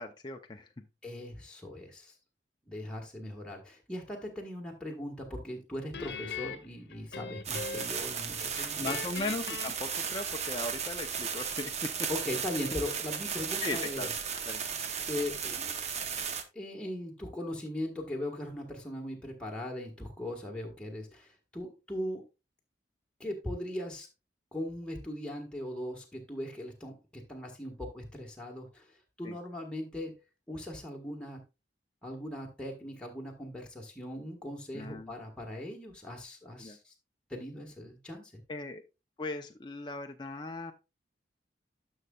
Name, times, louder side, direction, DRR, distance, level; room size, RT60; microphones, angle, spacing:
voice 1, 0.0-0.9 8.6-12.1 13.6-14.1 14.5-14.6 29.2-29.4 34.7-35.1 36.6-36.8 38.5-38.8 39.2-40.7, left 2 dB, 25° left, 4 dB, 0.5 m, -38 dB
voice 2, 1.0-2.1 2.6-9.0 12.1-14.1 15.1-15.8 16.5-22.2 23.2-24.1 24.5-30.2 30.5-31.4 32.0-36.9 37.3-38.4, left 1 dB, 5° left, -1 dB, 1.4 m, -39 dB
Guitar, 5.9-8.1 8.4-10.7, left 5 dB, 60° left, 1.0 m, -41 dB
sound 1, 7.4-16.4, right 6 dB, 35° right, 0.8 m, -35 dB
11.0 x 6.4 x 2.3 m, 0.26 s
head